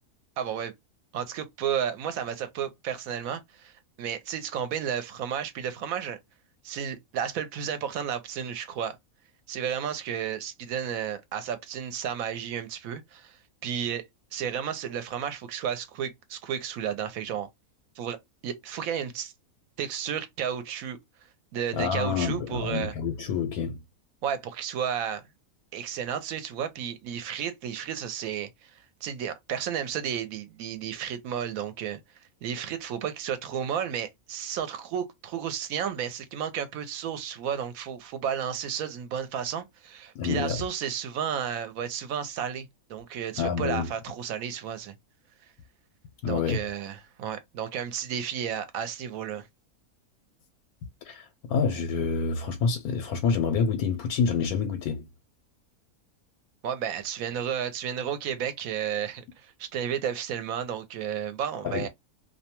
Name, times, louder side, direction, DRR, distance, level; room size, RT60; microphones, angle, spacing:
voice 1, 0.4-0.7 1.1-3.7 4.0-6.2 6.6-9.0 9.5-13.4 13.6-14.0 14.3-17.5 18.0-18.2 18.4-19.3 19.8-21.0 21.5-22.9 24.2-25.2 25.7-28.7 29.0-32.0 32.4-44.9 46.3-49.5 56.6-61.9, right 8 dB, 75° right, 1.0 m, -32 dB
voice 2, 21.7-23.8 40.1-40.6 43.4-43.9 46.2-46.6 51.0-55.1 61.6-61.9, left 5 dB, 90° left, 1.1 m, -27 dB
2.6 x 2.2 x 2.8 m
omnidirectional pair, 1.5 m